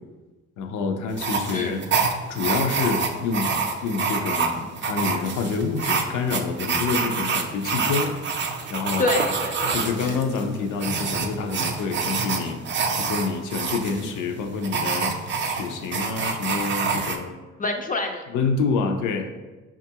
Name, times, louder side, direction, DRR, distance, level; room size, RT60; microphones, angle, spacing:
voice 1, 0.6-1.8 2.3-3.5 3.8-8.1 8.7-9.1 9.7-12.6 13.0-15.1 15.4-17.3 18.3-19.3, left 5 dB, 80° left, 5 dB, 0.5 m, -27 dB
sound 1, 1.1-17.2, right 5 dB, 40° right, 0.4 m, -27 dB
voice 2, 1.5-1.9 9.0-10.2 17.6-18.2, left 2 dB, 30° left, 3 dB, 0.4 m, -27 dB
5.2 x 2.4 x 2.8 m, 1.2 s
cardioid pair, 90°, 30 cm